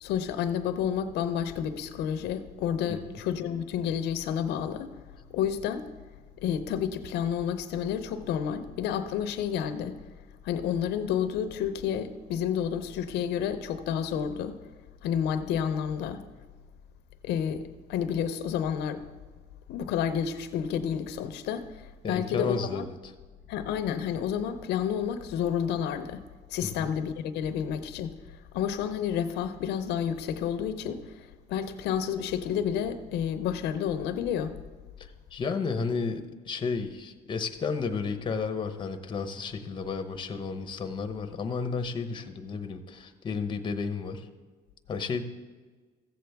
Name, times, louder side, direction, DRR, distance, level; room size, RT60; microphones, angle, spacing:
voice 1, 0.0-4.9 5.3-5.9 6.4-10.0 10.4-14.6 15.0-16.2 17.2-19.0 19.7-21.7 22.1-22.9 23.5-26.2 26.5-28.1 28.5-31.0 31.5-34.6, left 8 dB, 85° left, 10 dB, 0.6 m, -30 dB
voice 2, 22.0-23.1 26.6-26.9 35.3-44.3 44.9-45.2, left 4 dB, 30° left, 9 dB, 0.8 m, -32 dB
14.5 x 7.8 x 3.4 m, 1.4 s
cardioid pair, 110°, 17 cm